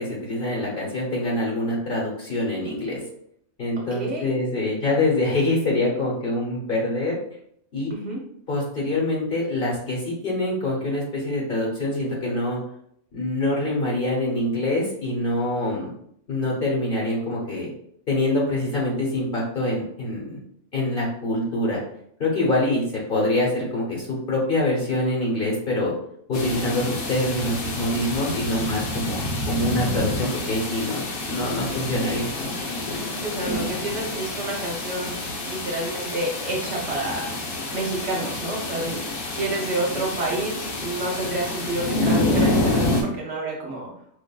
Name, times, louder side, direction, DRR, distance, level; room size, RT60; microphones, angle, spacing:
voice 1, 0.0-3.0 3.6-7.2 7.7-7.9 8.5-12.6 13.1-15.9 16.3-17.7 18.1-20.4 20.7-21.8 22.2-22.8 23.1-25.9 26.3-32.3, left 1 dB, 45° left, -3 dB, 1.0 m, -25 dB
voice 2, 3.9-4.3 7.9-8.2 28.4-28.9 33.2-35.1 35.4-37.4 37.7-43.9, right 2 dB, 60° right, -2 dB, 0.9 m, -29 dB
sound 1, 26.3-43.0, left 2 dB, 85° left, 1.2 m, -28 dB
4.8 x 2.5 x 2.2 m, 0.68 s
omnidirectional pair, 1.4 m